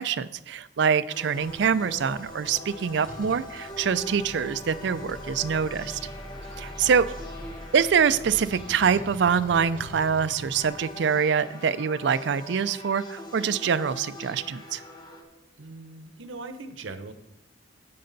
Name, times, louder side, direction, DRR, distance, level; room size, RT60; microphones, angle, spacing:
voice 1, 0.0-6.0 6.6-7.1 7.7-14.8, right 6 dB, 65° right, 14 dB, 0.4 m, -25 dB
sound 1, 1.1-15.2, left 1 dB, 20° left, 1.1 m, -42 dB
sound 2, 1.4-8.4, equal, 5° left, 0.6 m, -44 dB
sound 3, 3.1-3.5 4.8-6.7 7.2-11.3, equal, 45° right, 1.2 m, -46 dB
voice 2, 15.6-17.1, right 3 dB, 90° right, 9 dB, 0.8 m, -40 dB
9.5 x 7.7 x 3.9 m, 0.89 s
head